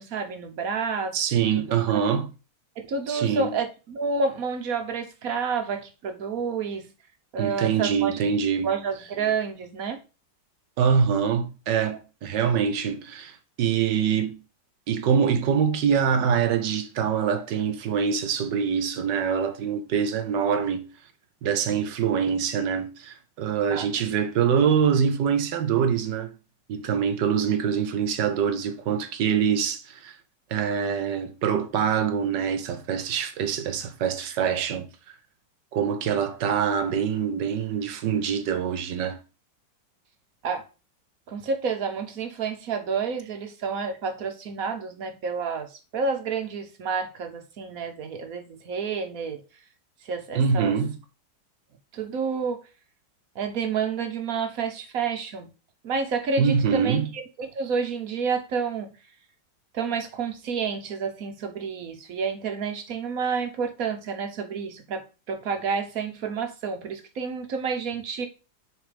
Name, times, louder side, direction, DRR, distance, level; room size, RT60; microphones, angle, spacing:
voice 1, 0.0-1.2 1.6-2.0 2.8-6.9 7.3-8.2 8.6-10.0 23.7-23.9 40.4-40.6 41.3-49.4 50.0-50.7 51.9-52.6 53.3-55.5 55.8-57.0 57.4-58.9 59.7-68.3, right 5 dB, 55° right, 1.2 m, -29 dB
voice 2, 1.1-2.3 3.1-3.5 7.4-8.7 10.8-14.4 14.9-20.8 21.4-26.3 26.7-30.2 30.5-34.9 35.7-39.2 50.3-50.9 56.4-57.1, right 7 dB, 75° right, 1.5 m, -24 dB
6.9 x 4.0 x 5.0 m
omnidirectional pair, 2.0 m